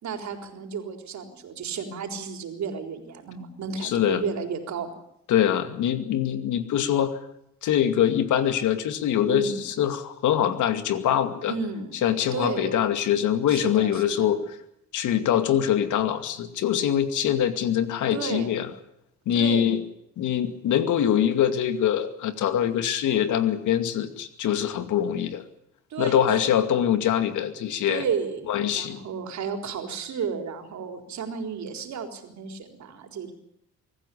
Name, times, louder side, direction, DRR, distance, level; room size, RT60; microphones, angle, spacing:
voice 1, 0.0-4.9 9.3-9.6 11.5-11.9 12.3-12.8 13.5-14.4 18.1-18.5 19.3-19.8 25.9-26.8 27.9-33.3, right 6 dB, 65° right, 6 dB, 4.2 m, -33 dB
voice 2, 3.8-4.2 5.3-7.2 7.6-11.5 12.0-14.4 14.9-18.7 19.3-19.8 20.2-25.4 26.0-28.0 28.5-29.0, left 10 dB, 85° left, 9 dB, 2.4 m, -24 dB
24.0 x 14.5 x 10.0 m, 0.78 s
cardioid pair, 90°, 30 cm